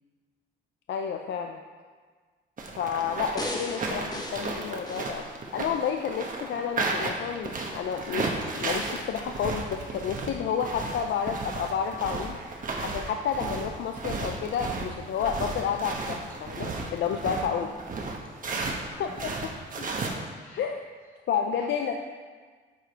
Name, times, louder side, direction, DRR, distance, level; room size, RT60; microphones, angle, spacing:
voice 1, 0.9-1.6 2.8-5.2 5.5-12.4 12.8-17.7 19.0-19.3 20.6-20.8 21.3-21.9, left 7 dB, 65° left, 4 dB, 0.5 m, -30 dB
sound 1, 2.6-18.8 19.1-20.1, right 3 dB, 40° right, 1.1 m, -33 dB
voice 2, 3.0-3.3 17.4-17.9 18.6-20.6 21.0-21.1 21.6-21.9, left 2 dB, 90° left, -4 dB, 2.1 m, -49 dB
sound 2, 3.4-5.9 6.4-6.5, left 1 dB, 20° left, 1.0 m, -37 dB
8.1 x 4.7 x 4.5 m, 1.5 s
cardioid pair, 90°, 20 cm